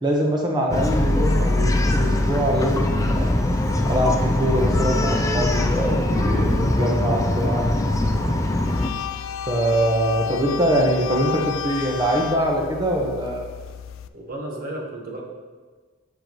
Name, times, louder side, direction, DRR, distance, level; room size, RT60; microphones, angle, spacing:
voice 1, 0.0-3.3 3.9-7.7 9.5-13.5, right 1 dB, 20° right, -1 dB, 1.1 m, -23 dB
Bark, 0.7-8.9, left 1 dB, 15° left, 0.5 m, -21 dB
sound 1, 8.6-14.1, left 8 dB, 75° left, 0.4 m, -32 dB
voice 2, 14.1-15.2, right 1 dB, 45° right, -1 dB, 1.3 m, -33 dB
7.8 x 7.4 x 3.1 m, 1.4 s
head